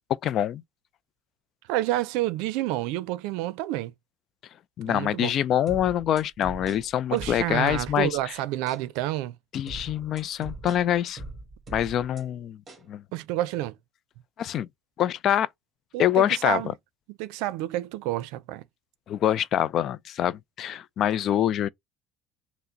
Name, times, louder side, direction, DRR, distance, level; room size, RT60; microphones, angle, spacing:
voice 1, 0.2-0.6 4.8-8.3 9.5-11.2 11.7-12.6 12.9-13.0 14.4-14.7 15.0-15.5 16.0-16.6 19.1-21.7, left 10 dB, 50° left, 0.3 m, -25 dB
voice 2, 1.7-3.9 4.9-5.3 7.1-9.3 13.1-13.7 15.9-16.7 17.2-18.6, right 15 dB, 85° right, 0.5 m, -29 dB
sound 1, 5.7-8.2 8.7-8.9 9.7-12.2 12.7-12.9, right 2 dB, 25° right, 1.6 m, -41 dB
5.7 x 2.1 x 3.8 m
cardioid pair, 120°, 0 cm